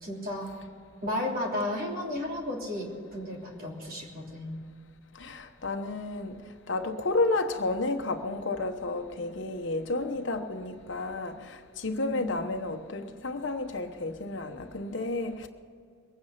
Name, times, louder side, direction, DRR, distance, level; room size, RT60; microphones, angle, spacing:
voice 1, 0.0-0.5 1.0-4.6 12.0-12.3, left 1 dB, 45° right, 3.2 m, -33 dB
voice 2, 5.2-6.3 6.7-15.5, left 2 dB, 60° left, 1.1 m, -31 dB
21.5 x 9.6 x 5.8 m
head